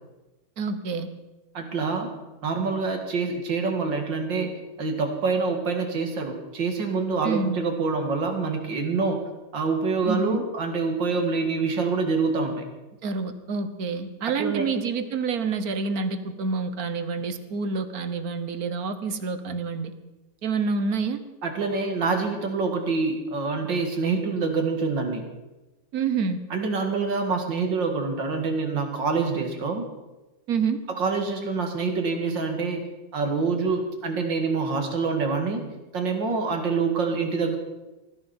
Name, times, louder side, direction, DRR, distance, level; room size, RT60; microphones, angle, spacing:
voice 1, 0.6-1.1 7.2-7.6 10.1-10.4 13.0-19.9 20.4-21.2 25.9-26.4 30.5-30.8, right 5 dB, 55° right, 10 dB, 1.5 m, -27 dB
voice 2, 1.5-2.1 2.4-4.5 4.8-9.2 9.5-12.7 14.4-14.7 21.4-25.2 26.5-29.9 30.9-32.8 33.1-35.6 35.9-37.6, right 4 dB, 85° right, 4 dB, 2.8 m, -26 dB
19.0 x 15.0 x 4.4 m, 1.1 s
omnidirectional pair, 1.9 m